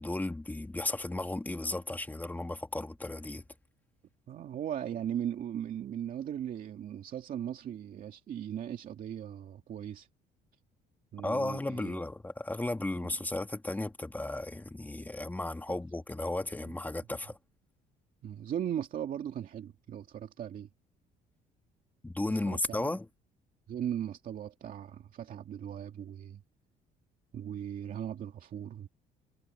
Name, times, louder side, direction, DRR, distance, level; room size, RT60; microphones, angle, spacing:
voice 1, 0.0-3.4 11.2-17.4 22.0-23.1, left 2 dB, 10° left, 2.0 m, -34 dB
voice 2, 4.3-10.1 11.1-12.0 13.0-13.1 15.7-15.8 16.6-17.1 18.2-20.7 22.4-23.0 23.7-26.4 27.3-28.9, right 10 dB, 55° right, 2.3 m, -38 dB
cardioid pair, 110°, 17 cm